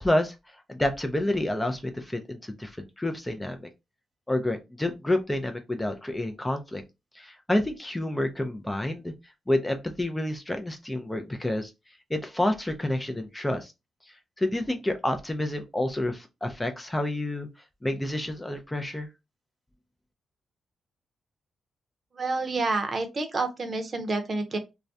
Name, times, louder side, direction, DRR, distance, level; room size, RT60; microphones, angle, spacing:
voice 1, 0.0-3.7 4.3-6.8 7.1-9.1 9.5-11.7 12.1-13.7 14.1-17.5 17.8-19.1, left 1 dB, 15° left, 0.4 m, -29 dB
voice 2, 22.1-24.6, right 3 dB, 45° right, 0.7 m, -28 dB
2.3 x 2.1 x 2.6 m
cardioid pair, 70°, 0 cm